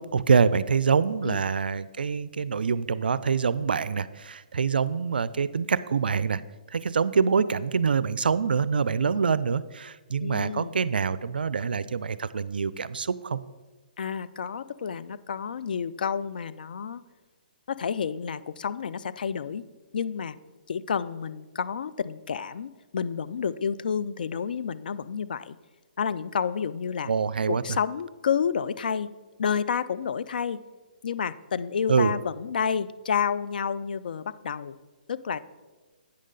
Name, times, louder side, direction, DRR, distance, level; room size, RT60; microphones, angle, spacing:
voice 1, 0.0-6.4 6.7-13.4 27.1-27.8 31.9-32.1, right 6 dB, 80° right, 16 dB, 0.3 m, -25 dB
voice 2, 10.2-10.7 14.0-17.0 17.7-19.6 19.9-20.4 20.7-25.6 26.0-27.1 27.5-29.1 29.4-30.6 31.0-34.8 35.1-35.4, left 7 dB, 65° left, 15 dB, 0.4 m, -30 dB
8.5 x 6.4 x 3.8 m, 1.2 s
hypercardioid pair, 145°, 5 cm